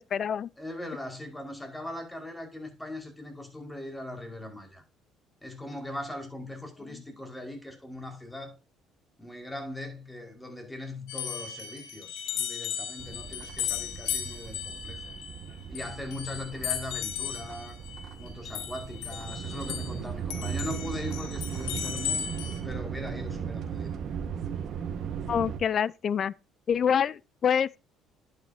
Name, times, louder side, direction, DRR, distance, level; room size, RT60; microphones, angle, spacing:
voice 1, 0.0-0.5 25.3-26.3 26.7-27.8, left 8 dB, 50° left, 0.5 m, -26 dB
voice 2, 0.6-4.8 5.4-8.6 9.2-15.0 15.7-17.8 18.2-22.2 22.6-24.0, left 1 dB, 10° left, 4.9 m, -40 dB
sound 1, 11.1-20.0 20.3-22.6, left 9 dB, 80° left, 2.3 m, -36 dB
sound 2, 13.0-25.6, right 7 dB, 60° right, 1.5 m, -37 dB
11.0 x 8.9 x 2.8 m
supercardioid pair, 70°, 0 cm